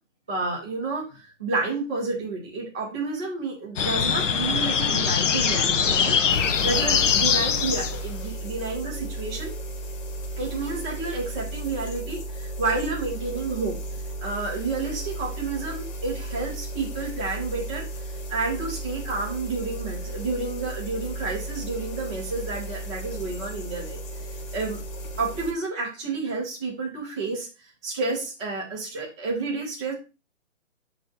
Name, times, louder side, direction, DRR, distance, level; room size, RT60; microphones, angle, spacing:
voice 1, 0.3-6.2 6.4-9.6 10.4-17.9 18.3-24.0 24.5-24.8 25.2-27.5 27.8-29.9, right 3 dB, 5° right, -13 dB, 0.4 m, -30 dB
sound 1, 3.8-8.2, left 7 dB, 70° left, 0.9 m, -22 dB
sound 2, 6.3-25.5, right 1 dB, 25° left, 1.3 m, -35 dB
6.7 x 4.3 x 4.1 m, 0.30 s
hypercardioid pair, 150°, 38 cm